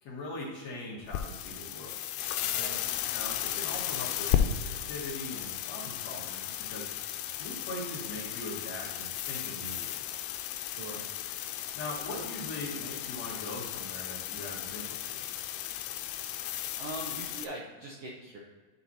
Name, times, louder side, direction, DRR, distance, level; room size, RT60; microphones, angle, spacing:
voice 1, 0.0-2.0 3.1-6.9 7.4-10.2 11.7-15.3, left 1 dB, 55° left, -4 dB, 2.5 m, -41 dB
sound 1, 1.0-17.5, left 10 dB, 90° left, 2.2 m, -35 dB
voice 2, 10.7-11.0 16.7-18.4, right 2 dB, 70° right, -2 dB, 1.5 m, -41 dB
10.5 x 4.0 x 4.2 m, 1.3 s
omnidirectional pair, 3.8 m